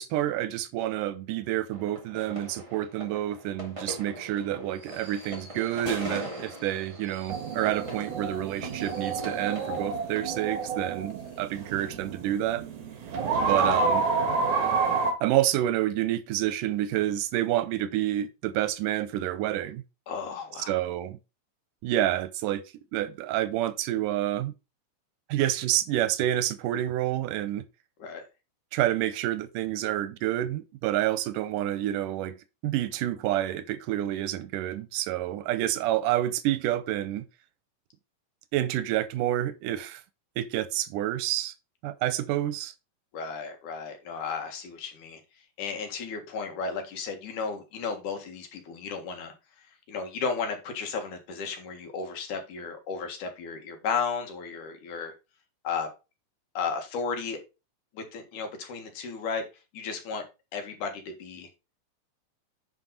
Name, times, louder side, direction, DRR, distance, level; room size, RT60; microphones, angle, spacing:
voice 1, 0.0-12.7 13.4-14.1 15.2-19.8 20.7-21.2 21.8-22.6 22.9-24.5 25.3-27.7 28.7-32.4 32.6-37.3 38.5-40.0 40.4-41.5 41.8-42.7, right 13 dB, 90° right, 2.3 m, -28 dB
sound 1, 1.7-10.3, equal, 15° right, 1.5 m, -41 dB
sound 2, 7.3-15.1, right 4 dB, 70° right, 2.9 m, -29 dB
voice 2, 20.1-20.8 28.0-28.2 43.1-45.2 45.6-49.3 49.9-55.1 55.6-55.9 56.5-57.4 57.9-59.4 59.7-60.2 60.5-61.5, left 5 dB, 75° left, 3.1 m, -34 dB
9.9 x 4.6 x 3.9 m
omnidirectional pair, 3.6 m